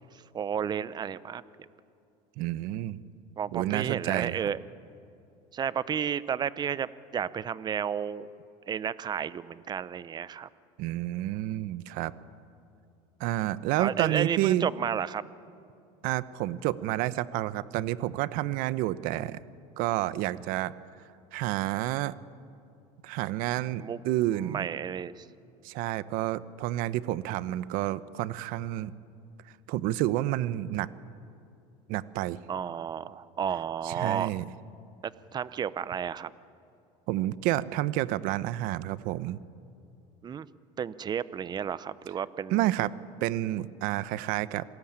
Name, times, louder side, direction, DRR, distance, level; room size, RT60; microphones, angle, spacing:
voice 1, 0.3-1.4 3.4-4.6 5.5-8.3 8.7-10.5 13.8-15.2 23.8-24.0 24.3-25.3 32.5-34.3 35.0-36.3 40.2-40.5 40.8-42.6, right 8 dB, 25° right, 17 dB, 0.7 m, -32 dB
voice 2, 2.4-3.0 3.5-4.5 10.8-12.1 13.2-14.7 16.0-19.4 19.8-20.7 21.3-22.1 23.0-24.7 25.6-28.9 29.7-30.9 31.9-32.4 33.8-34.4 37.1-39.4 42.5-42.9 43.2-44.6, right 15 dB, 65° right, 16 dB, 0.9 m, -29 dB
27.5 x 19.5 x 8.9 m, 2.6 s
cardioid pair, 130°, 16 cm